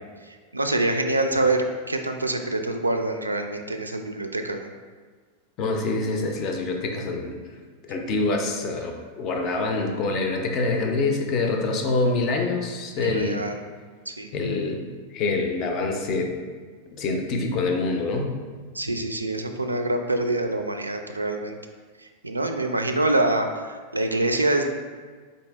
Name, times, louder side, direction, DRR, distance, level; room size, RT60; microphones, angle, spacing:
voice 1, 0.5-4.7 13.0-13.6 14.1-14.3 18.7-21.5 22.2-24.6, right 2 dB, 80° right, 5 dB, 0.3 m, -25 dB
voice 2, 5.6-7.4 7.8-13.4 14.3-14.8 15.1-16.4 16.9-18.4, left 3 dB, 35° left, 3 dB, 0.5 m, -25 dB
4.3 x 2.6 x 3.3 m, 1.5 s
figure-of-eight pair, 90°, 0 cm